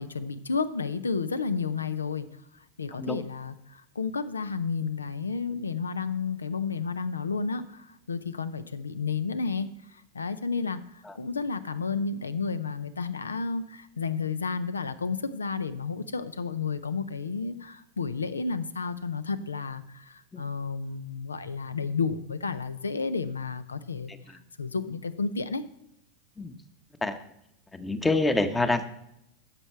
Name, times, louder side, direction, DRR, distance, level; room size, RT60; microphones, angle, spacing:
voice 1, 0.0-2.3 2.8-9.7 10.1-24.1 24.6-25.6, left 5 dB, 90° left, 14 dB, 0.5 m, -31 dB
voice 2, 27.7-28.9, left 2 dB, 15° left, 9 dB, 0.9 m, -27 dB
10.0 x 6.8 x 4.4 m, 0.79 s
hypercardioid pair, 95°, 0 cm